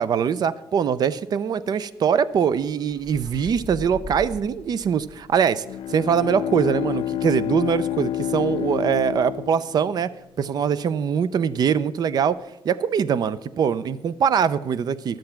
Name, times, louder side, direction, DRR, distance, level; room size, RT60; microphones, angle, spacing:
voice 1, 0.0-5.6 5.9-10.1 10.4-12.4 12.6-15.2, right 7 dB, 45° right, 17 dB, 0.5 m, -22 dB
sound 1, 2.5-6.1, left 1 dB, 10° right, 3.0 m, -40 dB
Bowed string instrument, 5.6-10.2, left 12 dB, 65° left, 0.4 m, -28 dB
12.5 x 7.7 x 5.8 m, 0.98 s
cardioid pair, 150°, 9 cm